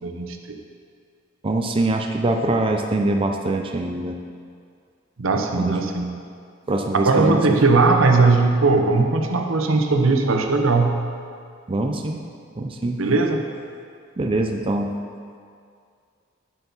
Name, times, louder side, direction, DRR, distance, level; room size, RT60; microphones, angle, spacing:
voice 1, 0.0-0.6 5.2-6.1 6.9-11.0 13.0-13.4, right 3 dB, 80° right, 4 dB, 0.8 m, -19 dB
voice 2, 1.4-4.2 5.3-5.9 6.7-7.6 11.7-12.2 12.6-13.0 14.2-14.9, right 2 dB, 25° right, 3 dB, 0.5 m, -23 dB
9.4 x 8.0 x 4.0 m, 2.3 s
head